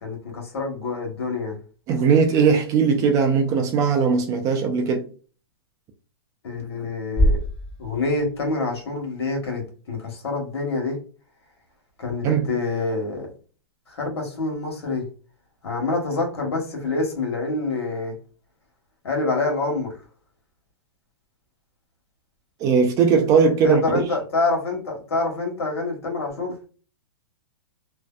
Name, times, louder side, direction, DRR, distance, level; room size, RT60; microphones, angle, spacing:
voice 1, 0.0-1.6 6.4-7.4 7.8-11.0 12.0-13.3 13.9-15.0 15.6-18.1 19.0-19.9 23.6-26.5, left 3 dB, 80° left, 1.1 m, -26 dB
voice 2, 1.9-5.1 12.2-12.5 22.6-24.1, right 5 dB, 25° right, 0.4 m, -19 dB
sound 1, 7.2-9.2, equal, 5° left, 0.9 m, -25 dB
2.6 x 2.1 x 2.2 m
hypercardioid pair, 140°, 14 cm